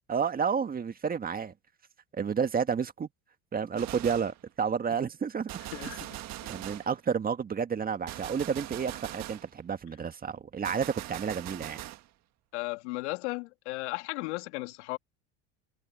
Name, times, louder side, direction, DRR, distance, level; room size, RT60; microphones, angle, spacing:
voice 1, 0.1-1.5 2.1-3.1 3.5-5.5 6.5-11.8, right 6 dB, 25° right, 1.7 m, -30 dB
Gunshot gunfire, 3.8-4.4 5.5-7.0 8.1-9.5 10.6-12.1, right 15 dB, 50° right, 1.7 m, -41 dB
voice 2, 5.7-6.2 12.5-15.0, left 24 dB, 80° left, 2.4 m, -35 dB
supercardioid pair, 100°, 35 cm